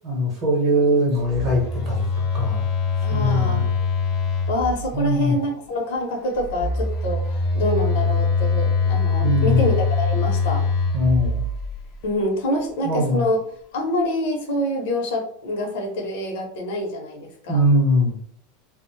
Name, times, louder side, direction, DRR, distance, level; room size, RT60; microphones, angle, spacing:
voice 1, 0.0-2.0 2.3-2.6 3.1-3.7 4.9-5.3 9.2-9.7 10.9-11.4 12.8-13.2 17.5-18.1, equal, 25° right, -2 dB, 0.8 m, -21 dB
Telephone, 1.2-5.2 6.3-12.0, left 4 dB, 25° left, 0.4 m, -23 dB
voice 2, 3.0-3.8 4.5-10.6 12.0-13.4 13.7-17.7, left 1 dB, 60° left, 1 dB, 0.7 m, -26 dB
2.5 x 2.0 x 3.1 m, 0.64 s
supercardioid pair, 180°, 0 cm